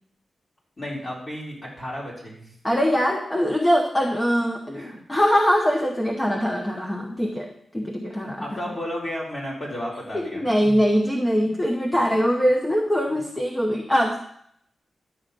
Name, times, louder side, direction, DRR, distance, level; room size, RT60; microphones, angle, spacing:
voice 1, 0.8-2.6 4.7-5.0 8.1-10.9 13.1-13.3, equal, 30° left, -4 dB, 3.8 m, -33 dB
voice 2, 2.6-8.6 10.1-14.2, equal, 15° left, 1 dB, 0.9 m, -22 dB
11.0 x 7.6 x 5.1 m, 0.70 s
wide cardioid pair, 160°, 0 cm